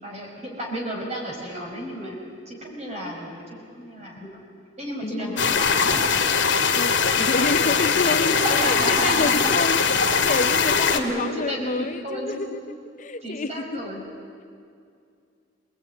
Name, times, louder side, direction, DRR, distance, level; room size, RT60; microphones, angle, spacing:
voice 1, 0.0-2.2 2.4-4.4 4.8-6.0 8.3-9.5 10.2-12.4 13.2-14.0, equal, 35° right, -1 dB, 5.6 m, -31 dB
voice 2, 5.0-5.6 6.8-12.6 13.0-13.7, left 3 dB, 40° left, 10 dB, 0.6 m, -28 dB
sound 1, 5.4-11.0, left 5 dB, 75° left, 2.3 m, -21 dB
24.0 x 20.0 x 9.6 m, 2.3 s
head